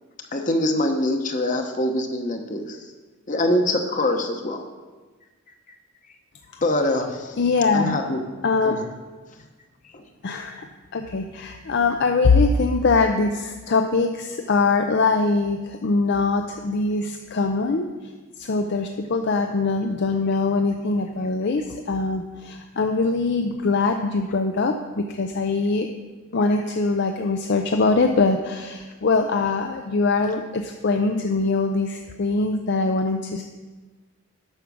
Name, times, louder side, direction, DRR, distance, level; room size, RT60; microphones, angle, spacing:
voice 1, 0.3-2.8 3.3-4.6 6.6-7.4 7.7-8.2 8.6-8.9 9.9-10.0, left 1 dB, 40° left, 5 dB, 0.9 m, -24 dB
voice 2, 7.4-8.0 8.4-8.8 10.2-10.7 10.9-17.9 18.4-25.9 26.3-33.4, left 3 dB, 55° left, 5 dB, 0.5 m, -22 dB
8.7 x 5.9 x 6.2 m, 1.3 s
head